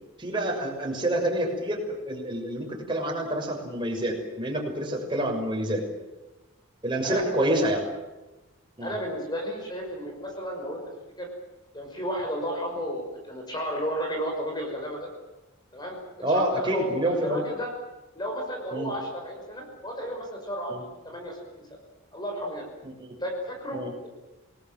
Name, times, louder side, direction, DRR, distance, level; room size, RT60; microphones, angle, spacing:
voice 1, 0.2-5.8 6.8-7.8 8.8-8.9 16.2-17.4 18.7-18.9 20.7-20.8 22.8-23.2 23.7-23.9, right 1 dB, 20° right, 1 dB, 6.3 m, -28 dB
voice 2, 7.0-7.6 8.8-11.3 11.7-15.1 15.7-16.0 16.3-17.7 18.1-21.8 22.1-22.6 23.2-24.1, equal, 20° left, 1 dB, 5.8 m, -33 dB
28.5 x 20.5 x 7.7 m, 1.1 s
head